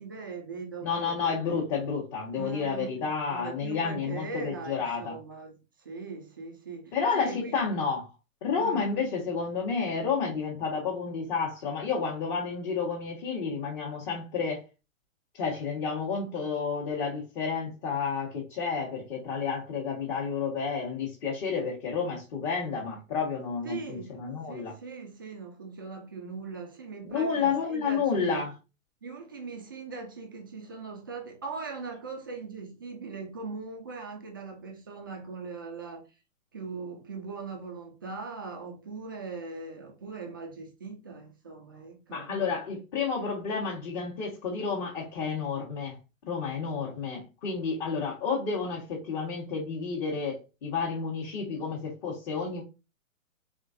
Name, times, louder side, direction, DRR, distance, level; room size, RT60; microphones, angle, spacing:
voice 1, 0.0-1.4 2.3-5.5 5.8-7.6 8.6-9.1 23.6-24.1 24.5-28.5 29.0-36.0 36.5-42.5, right 4 dB, 20° right, 0.3 m, -40 dB
voice 2, 0.8-5.2 6.9-8.1 8.4-14.6 15.3-24.7 27.0-28.5 42.1-46.0 46.3-52.6, left 5 dB, 35° left, 1.4 m, -30 dB
3.6 x 3.6 x 2.6 m
hypercardioid pair, 135°, 41 cm